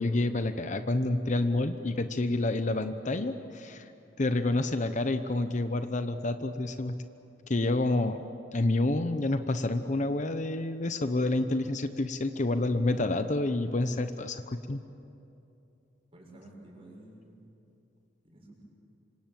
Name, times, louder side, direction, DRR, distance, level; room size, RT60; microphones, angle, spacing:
voice 1, 0.0-3.9 4.2-7.0 7.5-8.2 8.5-14.8, left 2 dB, 45° left, 9 dB, 0.9 m, -28 dB
voice 2, 16.1-17.4 18.2-18.6, right 1 dB, 30° right, -1 dB, 6.7 m, -51 dB
27.0 x 26.0 x 7.6 m, 2.7 s
head